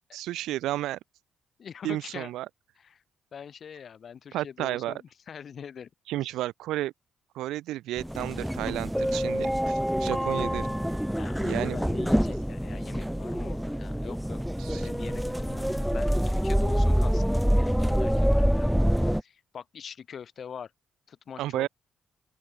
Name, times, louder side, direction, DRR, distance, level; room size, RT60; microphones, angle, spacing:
voice 1, 0.1-1.0 1.8-2.5 4.3-4.9 6.1-6.9 7.3-11.0 11.4-11.8 14.6-14.9 21.4-21.7, right 15 dB, 80° right, 0.5 m, -32 dB
voice 2, 1.6-2.3 2.8-3.0 3.3-5.9 6.2-6.3 11.2-14.4 14.7-20.7 21.1-21.7, left 7 dB, 60° left, 1.2 m, -44 dB
sound 1, 8.0-19.2, equal, ahead, 0.3 m, -26 dB
open air
hypercardioid pair, 50°, 0 cm